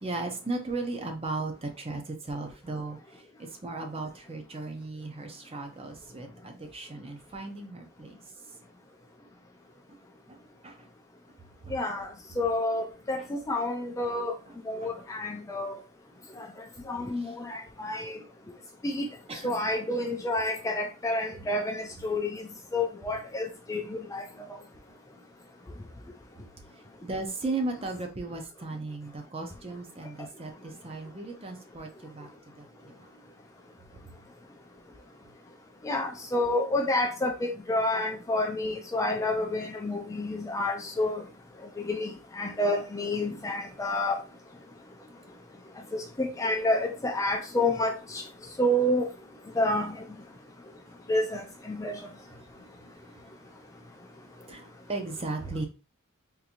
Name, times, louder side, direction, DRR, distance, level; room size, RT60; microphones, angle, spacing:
voice 1, 0.0-8.2 9.9-10.0 10.3-10.4 10.6-10.9 11.6-11.8 13.2-13.3 14.5-14.6 14.8-14.9 17.2-17.3 19.3-19.6 27.0-32.3 32.6-33.1 54.5-55.7, right 3 dB, 25° right, 0.6 m, -36 dB
voice 2, 11.7-12.1 12.4-14.3 14.7-15.7 16.9-18.2 18.8-19.1 19.4-22.4 22.7-24.2 35.8-41.2 41.9-42.1 42.4-44.2 45.9-48.2 48.6-49.1 49.6-49.9 51.1-51.4 51.7-51.9, left 1 dB, 15° left, 0.3 m, -29 dB
3.7 x 2.6 x 2.8 m
head